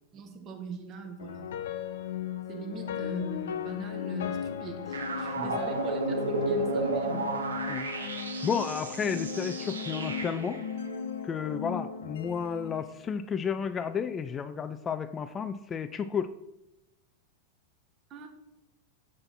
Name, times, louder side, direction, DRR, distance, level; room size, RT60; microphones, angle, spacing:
voice 1, 0.1-1.7 2.5-7.3 18.1-18.3, right 5 dB, 30° right, 4 dB, 1.6 m, -42 dB
sound 1, 1.2-13.5, left 7 dB, 60° left, 0.6 m, -36 dB
sound 2, 4.9-10.6, right 2 dB, 75° right, 1.2 m, -33 dB
voice 2, 8.4-10.6 11.2-16.3, left 7 dB, 20° left, 12 dB, 0.4 m, -32 dB
7.6 x 7.5 x 4.3 m, 0.92 s
figure-of-eight pair, 90°, 0 cm